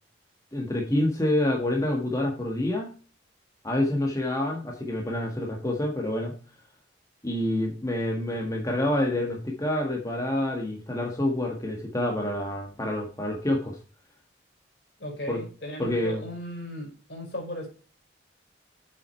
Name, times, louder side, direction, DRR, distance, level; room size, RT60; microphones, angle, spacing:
voice 1, 0.5-2.9 3.6-6.3 7.2-13.8 15.3-15.4 15.8-16.2, left 1 dB, 20° left, 0 dB, 1.5 m, -27 dB
voice 2, 15.0-17.7, left 1 dB, 65° left, 1 dB, 5.0 m, -36 dB
7.7 x 7.6 x 4.4 m, 0.38 s
head